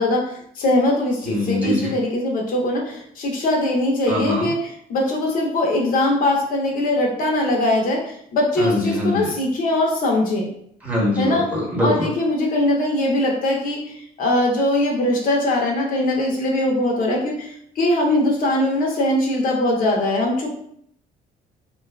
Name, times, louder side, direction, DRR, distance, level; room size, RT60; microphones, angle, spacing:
voice 1, 0.0-4.6 4.9-10.5 11.2-11.5 11.8-20.5, left 1 dB, 55° left, -1 dB, 0.6 m, -21 dB
voice 2, 1.2-1.9 4.1-4.5 8.6-9.3 10.8-12.1, left 1 dB, 10° right, -4 dB, 0.9 m, -23 dB
2.5 x 2.3 x 2.2 m, 0.67 s
cardioid pair, 110°, 17 cm